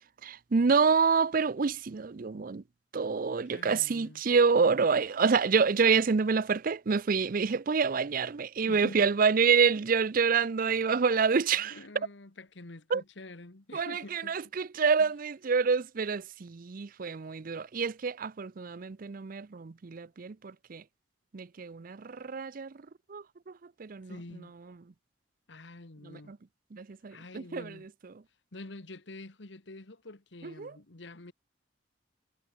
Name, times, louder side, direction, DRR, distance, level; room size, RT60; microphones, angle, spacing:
voice 1, 0.2-2.6 2.9-11.7 12.9-13.0 13.7-20.8 21.3-22.7 23.1-23.2 23.8-24.1 26.7-27.7 30.6-30.7, right 5 dB, 50° right, 0.5 m, -27 dB
voice 2, 3.4-4.2 8.6-9.1 11.5-14.6 15.0-15.1 24.0-24.5 25.5-26.4 27.1-27.9 28.5-31.3, left 2 dB, 70° left, 1.5 m, -47 dB
head